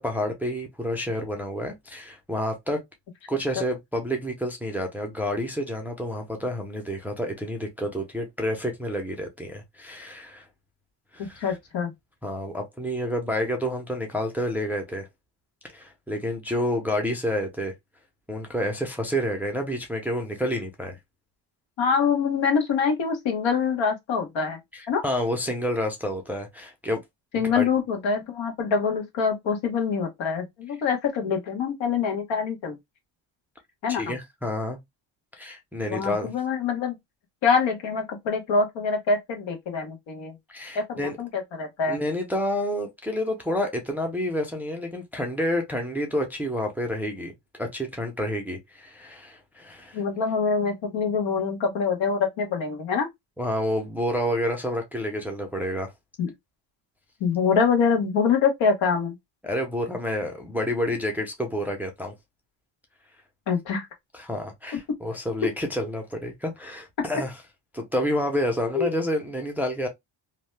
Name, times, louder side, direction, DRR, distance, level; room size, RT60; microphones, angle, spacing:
voice 1, 0.0-2.8 3.3-10.5 11.1-11.6 12.2-15.1 15.7-17.7 18.3-21.0 24.7-27.0 27.3-27.6 33.9-34.8 35.4-36.3 40.5-41.2 41.9-50.0 53.4-55.9 59.4-62.1 64.1-67.3 67.7-69.9, equal, 5° right, 0.5 m, -29 dB
voice 2, 11.4-11.9 21.8-24.6 24.9-25.0 27.3-32.8 33.8-34.1 35.9-37.0 37.4-40.3 40.7-42.0 49.9-53.1 56.2-56.3 57.2-59.1 63.5-63.9 68.7-68.9, left 5 dB, 75° left, 1.1 m, -25 dB
2.7 x 2.1 x 3.2 m
cardioid pair, 135°, 46 cm